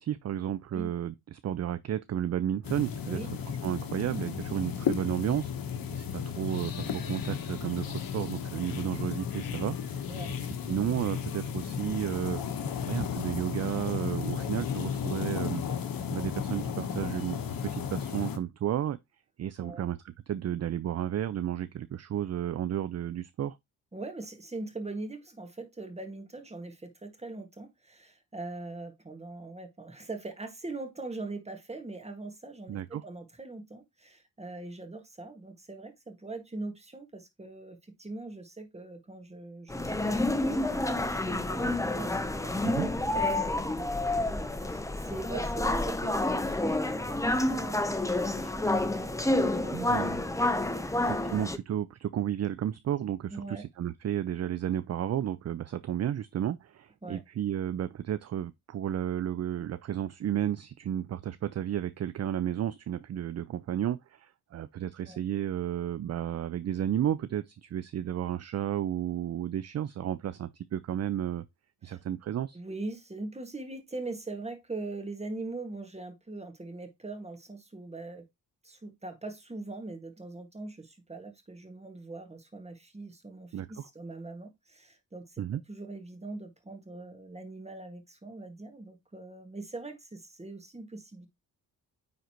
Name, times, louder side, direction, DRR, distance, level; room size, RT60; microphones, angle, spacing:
voice 1, 0.0-3.2 3.6-10.1 10.4-15.6 16.1-19.0 19.4-23.6 32.7-33.0 42.6-42.9 49.7-50.2 51.0-71.4 71.8-72.6 83.5-83.9 85.4-85.6, right 10 dB, 45° right, 0.5 m, -32 dB
sound 1, 2.6-18.4, left 7 dB, 65° left, 1.2 m, -34 dB
voice 2, 23.9-50.0 50.3-51.3 53.3-53.7 57.0-57.2 65.1-65.2 71.8-72.0 72.5-78.3 78.6-91.3, right 2 dB, 15° right, 1.8 m, -42 dB
sound 2, 39.7-51.6, left 2 dB, 10° left, 0.8 m, -29 dB
9.4 x 3.9 x 3.0 m
cardioid pair, 90°, 36 cm